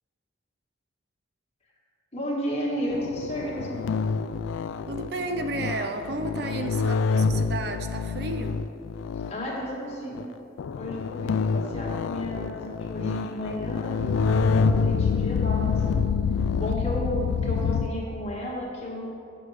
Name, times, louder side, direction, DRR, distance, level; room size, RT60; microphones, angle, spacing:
voice 1, 2.1-3.8 9.3-10.3 10.8-16.0 16.5-19.1, equal, 35° left, -3 dB, 1.6 m, -32 dB
sound 1, 2.9-9.5 10.1-10.2 10.6-17.9, left 5 dB, 90° left, 0.3 m, -27 dB
voice 2, 4.9-8.6 12.0-12.1 17.5-17.6, right 2 dB, 55° right, 7 dB, 0.5 m, -33 dB
8.8 x 6.3 x 4.9 m, 2.6 s
head